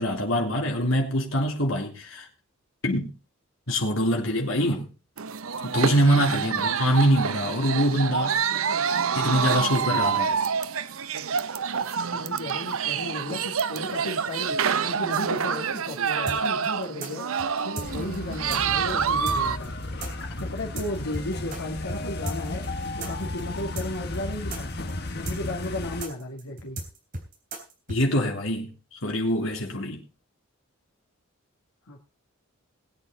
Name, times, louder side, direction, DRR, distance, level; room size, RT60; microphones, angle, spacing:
voice 1, 0.0-2.2 2.8-3.1 3.7-4.9 5.6-8.4 9.1-10.3 27.9-28.7 29.0-30.1, equal, 65° left, 3.4 m, -24 dB
sound 1, 5.2-19.6, right 6 dB, 80° right, 0.7 m, -27 dB
voice 2, 6.3-6.6 12.1-19.7 20.3-22.7 22.9-24.7 25.2-26.8 31.9-32.0, left 1 dB, 85° left, 2.4 m, -35 dB
sound 2, 16.3-21.6 21.9-22.0 22.3-28.0, right 2 dB, 40° right, 3.6 m, -36 dB
sound 3, 17.8-26.0, left 2 dB, 50° left, 1.5 m, -34 dB
20.0 x 8.7 x 4.0 m
head